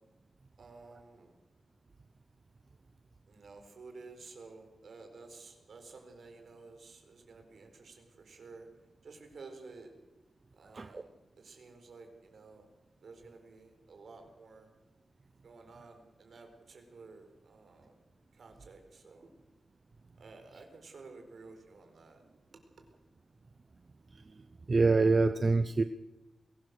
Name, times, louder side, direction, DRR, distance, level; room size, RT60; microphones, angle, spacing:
voice 1, 0.6-1.3 3.3-8.7 9.0-9.9 10.6-12.7 13.0-14.7 15.4-18.0 18.3-19.3 20.2-22.2 22.5-22.6, right 3 dB, 60° right, 5 dB, 4.4 m, -52 dB
voice 2, 24.7-25.8, right 3 dB, 35° right, 10 dB, 0.6 m, -25 dB
22.5 x 18.0 x 6.6 m, 0.97 s
wide cardioid pair, 170°, 0 cm